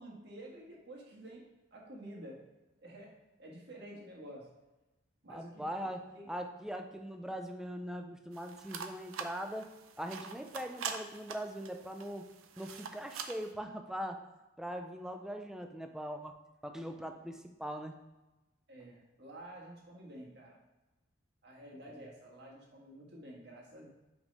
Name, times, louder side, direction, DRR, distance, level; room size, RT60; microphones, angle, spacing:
voice 1, 0.0-1.4 1.7-2.4 2.8-3.1 3.4-4.5 5.2-6.3 18.7-20.6 21.4-23.9, right 1 dB, 50° right, -2 dB, 1.6 m, -50 dB
voice 2, 5.3-14.2 14.6-18.0 21.9-22.0, equal, 5° right, 5 dB, 0.4 m, -41 dB
sound 1, 8.3-13.5, right 6 dB, 80° right, 0.6 m, -44 dB
5.3 x 5.1 x 5.2 m, 1.1 s
head